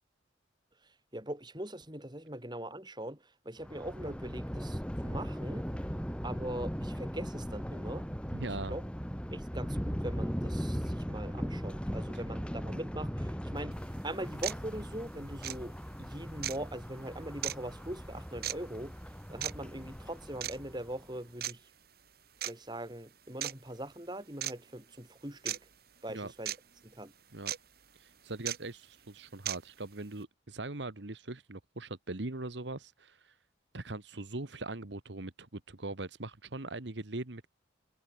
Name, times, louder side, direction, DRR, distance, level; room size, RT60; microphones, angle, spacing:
voice 1, 1.1-3.2 3.5-5.6 6.2-8.1 8.7-8.8 9.3-13.8 14.0-19.0 19.3-21.6 22.4-25.6 26.0-26.5 26.8-27.1, right 1 dB, 25° right, 5.7 m, -41 dB
Thunder, 3.6-21.0, equal, 5° left, 4.4 m, -38 dB
voice 2, 8.3-8.8 26.1-26.3 27.3-27.5 28.0-33.3 33.7-37.5, right 2 dB, 70° right, 1.5 m, -41 dB
sound 1, 13.7-13.8 14.4-14.6 15.4-15.6 16.4-16.6 17.4-17.6 18.4-18.6 19.4-19.5 20.4-20.6 21.4-21.5 22.4-22.5 23.4-23.5 24.4-24.5 25.5-25.6 26.5-26.6 27.5-27.6 28.5-28.6 29.5-29.6, right 11 dB, 55° right, 3.0 m, -34 dB
head